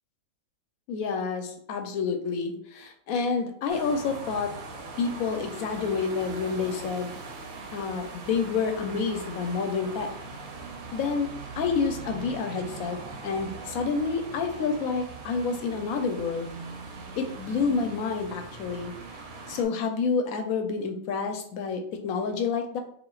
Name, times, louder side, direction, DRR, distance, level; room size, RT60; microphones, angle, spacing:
voice 1, 0.9-4.5 5.0-7.1 7.7-10.1 10.9-13.0 13.2-16.5 17.2-18.9 19.5-22.8, left 5 dB, 75° left, 5 dB, 1.0 m, -29 dB
sound 1, 3.7-19.6, right 3 dB, 75° right, 1.1 m, -41 dB
5.1 x 2.4 x 2.3 m, 0.63 s
omnidirectional pair, 1.5 m